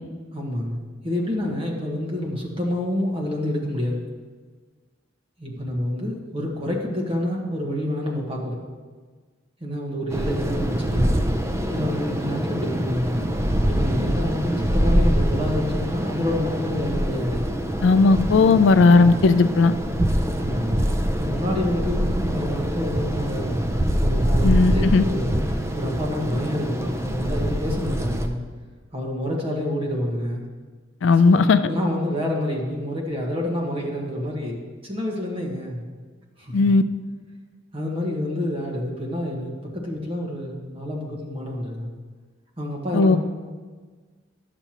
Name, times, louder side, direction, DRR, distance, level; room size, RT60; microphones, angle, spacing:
voice 1, 0.3-0.8 1.0-4.1 5.4-8.6 9.6-11.2 11.7-13.2 13.6-17.5 20.3-20.8 21.2-23.6 24.0-28.4 28.9-30.5 31.2-35.8 36.4-36.7 37.7-41.9 42.6-43.2, left 1 dB, 30° right, -2 dB, 1.4 m, -28 dB
sound 1, 10.1-28.3, equal, 15° right, 0.5 m, -24 dB
voice 2, 17.8-19.7 24.4-25.0 31.0-31.6 36.5-36.8 42.9-43.2, left 4 dB, 70° left, 12 dB, 0.4 m, -16 dB
11.0 x 6.8 x 3.0 m, 1.4 s
head